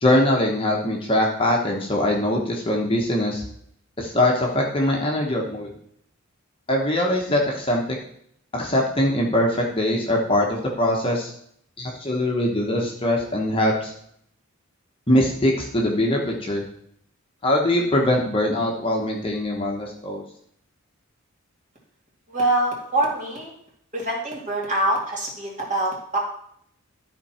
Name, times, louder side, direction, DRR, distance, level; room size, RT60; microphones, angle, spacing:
voice 1, 0.0-3.4 4.0-5.7 6.7-8.0 8.5-11.3 11.8-13.9 15.1-16.6 17.4-20.2, left 1 dB, 25° left, 0 dB, 1.1 m, -22 dB
voice 2, 22.3-23.5 23.9-26.2, right 1 dB, 35° right, -2 dB, 2.4 m, -24 dB
12.5 x 4.5 x 4.4 m, 0.68 s
head